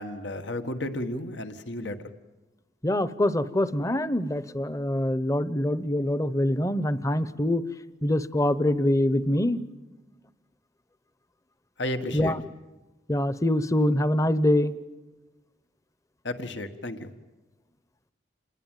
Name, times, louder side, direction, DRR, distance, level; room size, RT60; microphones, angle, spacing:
voice 1, 0.0-2.0 11.8-12.3 16.2-17.1, left 1 dB, 85° left, 8 dB, 1.6 m, -33 dB
voice 2, 2.8-7.6 8.0-9.6 12.1-12.4 13.1-14.7, left 1 dB, 20° left, 15 dB, 0.8 m, -24 dB
27.5 x 20.0 x 9.1 m, 1.1 s
head